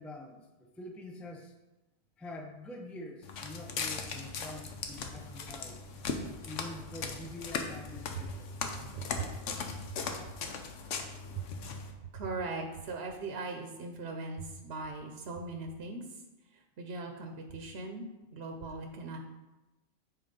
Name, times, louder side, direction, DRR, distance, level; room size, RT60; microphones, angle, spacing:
voice 1, 0.0-1.5 2.2-5.8 6.5-8.6, left 2 dB, ahead, 4 dB, 0.4 m, -46 dB
Walk footsteps, 3.2-11.9, left 4 dB, 75° left, 1.1 m, -39 dB
voice 2, 8.9-9.3 11.3-11.4 12.0-16.2 16.5-19.2, right 3 dB, 60° right, 3 dB, 1.0 m, -40 dB
7.7 x 4.4 x 5.2 m, 1.0 s
omnidirectional pair, 1.3 m